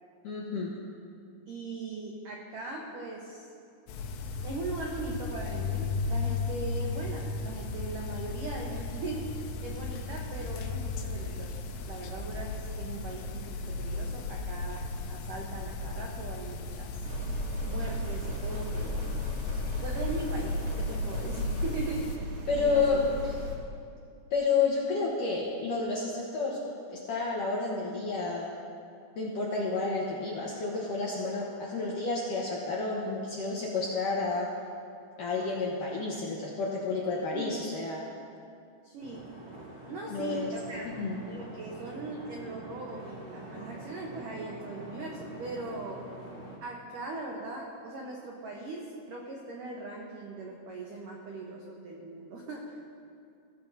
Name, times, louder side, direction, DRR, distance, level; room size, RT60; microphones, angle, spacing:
voice 1, 0.2-0.8 22.5-23.1 24.3-26.6 26.9-28.5 29.2-34.5 35.2-38.1 40.1-40.5 41.0-41.2, left 4 dB, 70° left, -5 dB, 2.0 m, -30 dB
voice 2, 1.5-3.5 4.4-11.5 11.9-17.0 17.6-19.0 19.8-23.0 37.3-37.6 38.8-39.3 39.9-40.9 41.2-46.0 46.6-52.8, right 3 dB, 85° right, -2 dB, 1.8 m, -40 dB
sound 1, 3.9-22.2, left 3 dB, 90° left, 3.6 m, -35 dB
sound 2, 17.0-23.6, equal, 65° right, 3.3 m, -35 dB
sound 3, 39.0-46.6, right 1 dB, 35° right, 1.6 m, -45 dB
22.5 x 15.0 x 2.9 m, 2.4 s
omnidirectional pair, 5.7 m